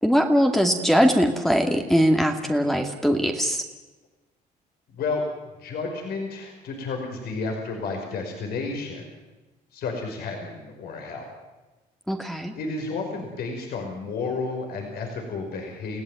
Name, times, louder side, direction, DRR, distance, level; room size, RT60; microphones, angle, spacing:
voice 1, 0.0-3.6 12.1-12.5, equal, ahead, 4 dB, 2.4 m, -21 dB
voice 2, 4.9-5.2 5.6-9.1 9.7-11.4 12.6-16.0, left 4 dB, 70° left, 2 dB, 5.4 m, -31 dB
29.5 x 16.5 x 9.3 m, 1.1 s
cardioid pair, 110°, 17 cm